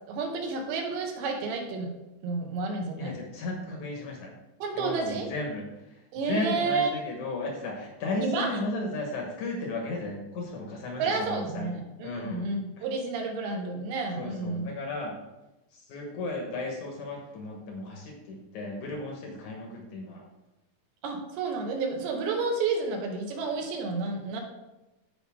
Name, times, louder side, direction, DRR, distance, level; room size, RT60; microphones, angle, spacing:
voice 1, 0.1-1.9 2.2-3.1 4.6-5.3 6.1-6.9 8.2-8.5 11.0-14.7 21.0-24.4, right 4 dB, 85° right, 2 dB, 3.5 m, -30 dB
voice 2, 2.9-4.3 4.7-5.6 6.2-11.7 12.0-12.4 14.2-15.1 15.7-20.2, left 2 dB, 70° left, 1 dB, 1.8 m, -34 dB
14.5 x 5.2 x 3.6 m, 0.99 s
omnidirectional pair, 5.0 m